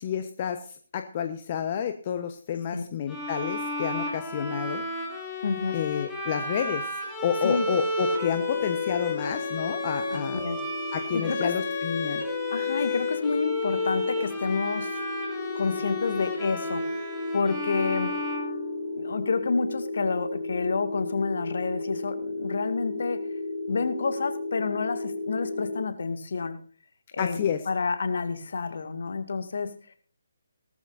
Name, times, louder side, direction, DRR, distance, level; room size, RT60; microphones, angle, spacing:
voice 1, 0.0-4.8 5.7-6.9 7.2-10.4 10.9-12.2 27.2-27.6, left 8 dB, 35° left, 7 dB, 1.1 m, -30 dB
Bowed string instrument, 3.1-19.1, left 2 dB, 10° left, 4.0 m, -32 dB
voice 2, 5.4-5.7 7.4-7.7 10.1-10.6 11.0-11.5 12.5-15.0 15.5-17.1 17.3-18.1 19.0-23.2 23.7-26.6 27.1-29.7, left 4 dB, 60° left, 8 dB, 2.1 m, -29 dB
sound 1, 8.1-25.8, left 2 dB, 35° right, 7.3 m, -34 dB
18.0 x 13.5 x 2.6 m, 0.44 s
figure-of-eight pair, 145°, 0 cm